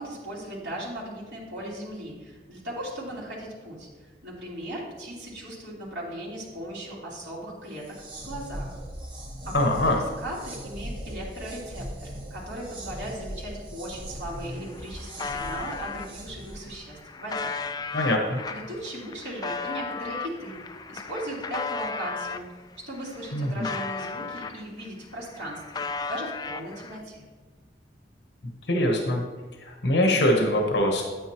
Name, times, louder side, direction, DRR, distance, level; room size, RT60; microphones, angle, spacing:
voice 1, 0.0-8.8 9.4-9.9 10.2-17.6 18.5-20.6 20.9-22.4 22.9-25.8 26.1-27.3, right 1 dB, 85° right, -6 dB, 3.1 m, -37 dB
sound 1, 7.7-16.8, equal, 30° right, 1.2 m, -39 dB
voice 2, 9.5-10.0 17.9-18.4 23.3-23.7 28.7-29.2 29.6-31.0, left 1 dB, 75° left, 2 dB, 1.1 m, -23 dB
sound 2, 14.2-14.3 14.5-16.1 16.7-22.5 22.9-24.9 25.2-27.0, left 4 dB, 20° left, 0.3 m, -35 dB
9.2 x 9.1 x 3.0 m, 1.3 s
head